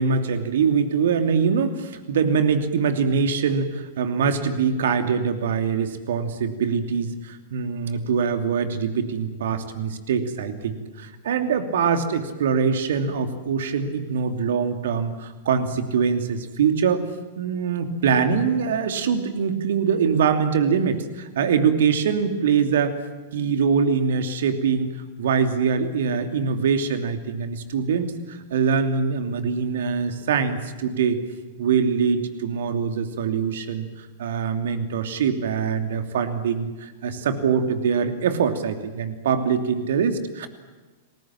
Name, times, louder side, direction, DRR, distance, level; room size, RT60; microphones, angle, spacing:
voice 1, 0.0-17.0 17.4-23.0 23.3-24.9 25.2-31.2 31.6-40.5, right 6 dB, 60° right, 7 dB, 2.8 m, -23 dB
30.0 x 20.5 x 7.5 m, 1.3 s
figure-of-eight pair, 95°, 0 cm